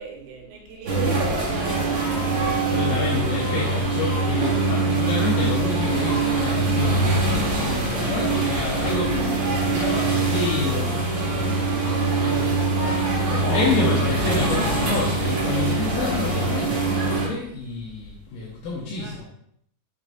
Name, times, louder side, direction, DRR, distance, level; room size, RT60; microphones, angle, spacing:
voice 1, 0.0-2.1 2.6-2.9 8.1-8.3 19.0-19.2, right 5 dB, 90° right, 0 dB, 3.1 m, -34 dB
sound 1, 0.9-17.3, right 3 dB, 45° right, 2.6 m, -23 dB
voice 2, 2.4-7.2 7.5-19.2, left 3 dB, 80° left, -5 dB, 2.7 m, -29 dB
7.0 x 6.5 x 2.6 m, 0.69 s
omnidirectional pair, 4.1 m